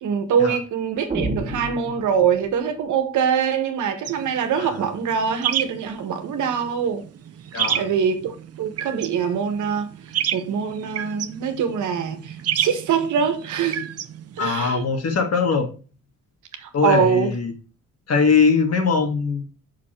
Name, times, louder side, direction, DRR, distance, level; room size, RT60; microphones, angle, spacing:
voice 1, 0.0-7.0 7.5-9.9 10.3-13.9 14.4-14.8 16.6-17.3, right 7 dB, 75° right, 1.6 m, -23 dB
sound 1, 1.1-2.7, right 2 dB, 25° right, 2.3 m, -30 dB
sound 2, 4.1-14.5, right 9 dB, 55° right, 0.9 m, -31 dB
voice 2, 7.5-7.9 14.4-15.7 16.7-17.5 18.1-19.5, left 5 dB, 55° left, 2.3 m, -21 dB
6.2 x 5.6 x 4.5 m
cardioid pair, 90°, 30 cm